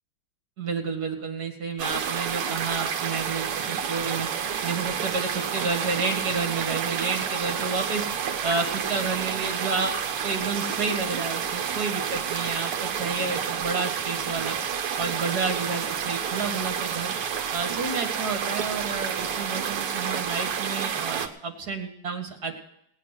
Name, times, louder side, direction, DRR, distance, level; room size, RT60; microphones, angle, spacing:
voice 1, 0.6-4.3 4.6-8.1 8.4-14.6 15.0-17.1 17.5-22.5, right 4 dB, 45° right, 3 dB, 2.6 m, -30 dB
sound 1, 1.8-21.3, right 7 dB, 85° right, 2.0 m, -29 dB
18.5 x 9.3 x 6.1 m, 0.75 s
omnidirectional pair, 2.4 m